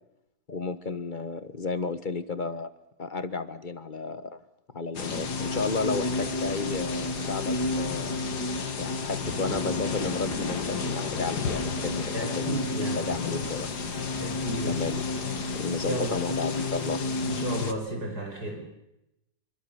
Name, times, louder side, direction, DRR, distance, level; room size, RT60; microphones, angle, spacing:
voice 1, 0.5-2.7 3.0-4.4 4.7-8.2 8.8-13.7 14.7-15.0 15.5-17.0, left 4 dB, 30° left, 13 dB, 1.3 m, -33 dB
sound 1, 4.9-17.7, left 3 dB, 65° left, 2.5 m, -30 dB
Laughter, 5.9-8.0 9.2-12.7 13.1-15.8, right 3 dB, 35° right, 2.5 m, -46 dB
voice 2, 12.1-13.4 14.2-14.8 15.2-15.3 15.8-16.1 17.2-18.6, right 1 dB, 60° right, 2 dB, 5.8 m, -33 dB
25.5 x 25.0 x 7.1 m, 0.86 s
omnidirectional pair, 1.9 m